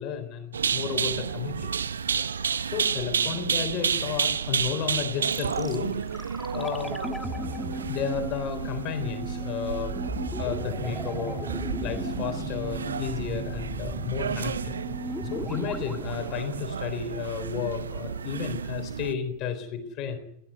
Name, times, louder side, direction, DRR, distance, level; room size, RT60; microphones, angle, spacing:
voice 1, 0.0-1.7 2.7-5.9 6.5-6.9 7.9-10.0 10.4-11.4 11.8-14.7 15.2-20.2, left 7 dB, 40° left, 6 dB, 3.7 m, -32 dB
sound 1, 0.5-19.1, right 6 dB, 70° right, 0.9 m, -31 dB
sound 2, 5.3-17.3 17.6-17.7, left 1 dB, ahead, 1.7 m, -37 dB
19.5 x 15.0 x 9.4 m, 0.76 s
figure-of-eight pair, 90°, 0 cm